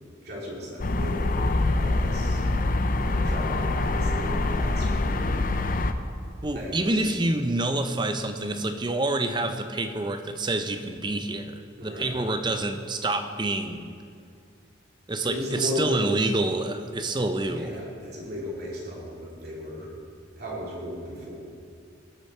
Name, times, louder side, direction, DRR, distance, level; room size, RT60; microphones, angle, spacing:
voice 1, 0.2-2.4 3.1-5.3 6.5-7.1 11.8-12.2 15.2-16.2 17.5-19.9 20.4-21.4, left 1 dB, 50° right, -5 dB, 3.0 m, -35 dB
sound 1, 0.8-5.9, left 2 dB, 45° left, 0.5 m, -25 dB
voice 2, 6.4-13.9 15.1-17.8, right 2 dB, 25° right, 7 dB, 0.6 m, -27 dB
19.0 x 6.7 x 4.4 m, 2.3 s
head